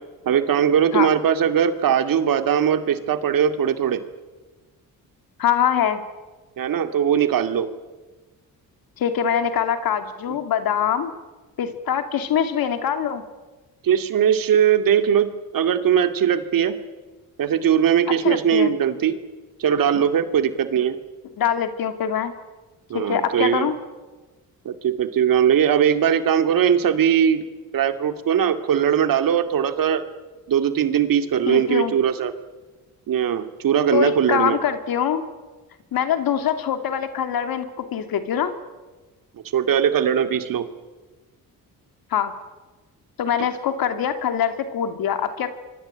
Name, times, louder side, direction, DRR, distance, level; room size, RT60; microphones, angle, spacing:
voice 1, 0.3-4.0 6.6-7.7 13.8-16.8 17.4-19.1 19.6-21.0 22.9-23.7 24.6-27.4 27.7-30.0 30.5-32.3 33.1-34.6 39.5-40.6, right 8 dB, 65° right, 9 dB, 2.3 m, -20 dB
voice 2, 5.4-6.0 9.0-11.1 11.6-13.2 18.2-18.7 21.4-22.3 22.9-23.7 31.5-31.9 33.9-35.2 35.9-38.5 42.1-42.3 43.2-45.5, left 8 dB, 75° left, 8 dB, 2.9 m, -23 dB
25.5 x 24.0 x 9.0 m, 1.2 s
cardioid pair, 110°, 36 cm